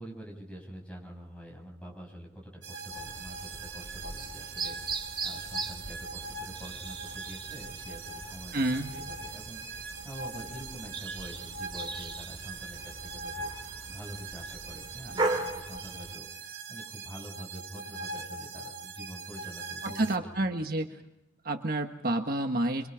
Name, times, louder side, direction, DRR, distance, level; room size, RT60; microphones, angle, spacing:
voice 1, 0.0-20.5, equal, 5° left, 0 dB, 7.6 m, -46 dB
sound 1, 2.6-20.2, right 3 dB, 85° right, 2.9 m, -41 dB
sound 2, 2.9-16.1, right 3 dB, 25° right, 2.8 m, -39 dB
voice 2, 8.5-8.9 19.8-20.9 21.4-22.9, right 1 dB, 50° right, 5 dB, 1.4 m, -29 dB
26.0 x 25.5 x 5.1 m, 0.83 s
head